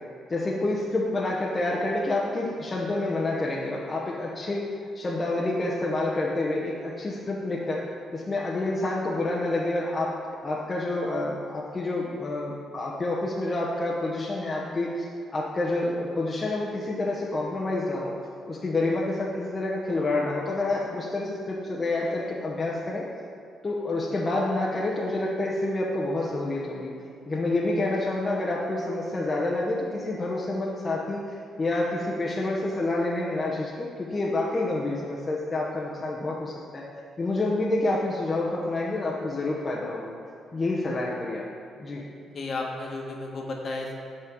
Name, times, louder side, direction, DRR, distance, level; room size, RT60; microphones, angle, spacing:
voice 1, 0.3-4.6 4.9-7.8 8.1-10.1 10.4-15.1 15.3-18.1 18.5-23.0 23.6-26.9 27.3-36.9 37.2-40.1 40.5-41.5 41.8-42.1, left 2 dB, 30° left, -4 dB, 1.0 m, -28 dB
voice 2, 42.3-43.9, left 2 dB, 45° left, 0 dB, 1.4 m, -33 dB
8.4 x 4.3 x 6.9 m, 2.4 s
cardioid pair, 90°, 0 cm